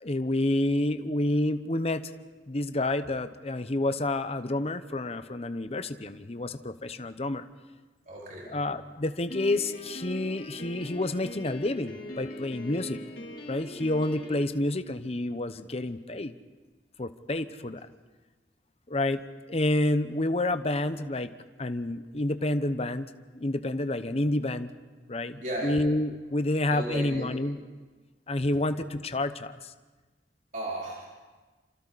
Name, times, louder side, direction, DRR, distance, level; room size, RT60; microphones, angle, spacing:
voice 1, 0.0-2.1 2.5-7.5 8.5-13.0 13.5-16.3 17.0-17.9 18.9-19.2 19.5-21.3 21.6-24.7 25.1-27.6 28.3-29.7, left 1 dB, 35° left, 10 dB, 0.9 m, -29 dB
voice 2, 8.1-8.5 25.4-25.7 26.7-27.3 30.5-31.1, right 1 dB, 45° right, -4 dB, 4.8 m, -35 dB
Piano, 9.3-14.4, equal, 55° left, 3.1 m, -41 dB
29.5 x 27.0 x 4.2 m, 1.3 s
head